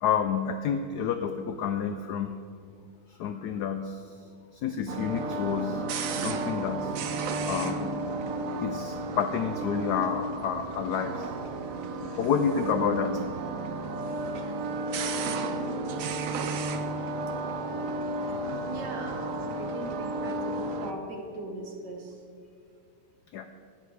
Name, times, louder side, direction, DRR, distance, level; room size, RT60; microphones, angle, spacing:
voice 1, 0.0-2.3 3.2-4.1 4.5-5.8 6.1-6.9 7.5-8.0 8.6-11.3 12.0-13.2 23.3-23.5, left 7 dB, 80° left, 8 dB, 0.9 m, -29 dB
sound 1, 4.9-20.9, right 2 dB, 80° right, 0.7 m, -32 dB
voice 2, 18.2-22.2, right 2 dB, 55° right, 1 dB, 1.9 m, -40 dB
12.5 x 8.9 x 4.8 m, 2.3 s
omnidirectional pair, 2.2 m